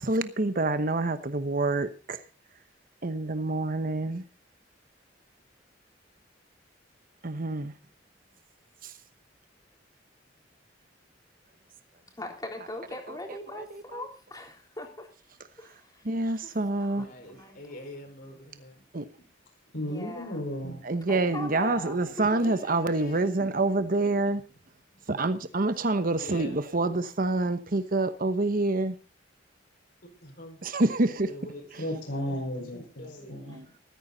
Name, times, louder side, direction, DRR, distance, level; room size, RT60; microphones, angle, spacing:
voice 1, 0.0-2.2 3.0-4.2 7.2-7.7 8.8-8.9 13.5-13.6 16.0-17.1 18.9-19.1 20.8-24.4 25.1-29.0 30.6-31.3 31.7-31.8 33.3-33.6, right 2 dB, 50° right, 1.0 m, -27 dB
voice 2, 12.2-15.1 15.6-16.1 16.4-16.5 16.8-17.9 19.9-20.4 21.1-22.6 33.5-33.6, left 1 dB, 20° left, 3.6 m, -41 dB
voice 3, 17.0-18.8 22.4-23.3 26.2-26.6 30.2-30.6 31.2-31.7 32.1-32.3 32.7-33.4, left 1 dB, 55° left, 4.8 m, -45 dB
voice 4, 19.7-20.8 31.8-33.8, equal, 80° left, 5.1 m, -34 dB
14.0 x 14.0 x 4.0 m
head